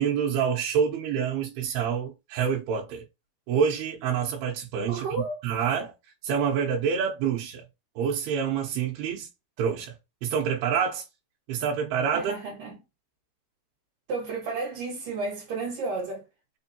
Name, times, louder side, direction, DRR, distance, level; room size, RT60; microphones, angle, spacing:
voice 1, 0.0-3.0 3.5-5.9 6.2-7.6 8.0-9.3 9.6-11.0 11.5-12.3, right 7 dB, 90° right, 2.9 m, -27 dB
voice 2, 4.9-5.3 12.1-12.8 14.1-16.3, right 3 dB, 65° right, 3.2 m, -32 dB
6.1 x 2.6 x 2.8 m
omnidirectional pair, 4.3 m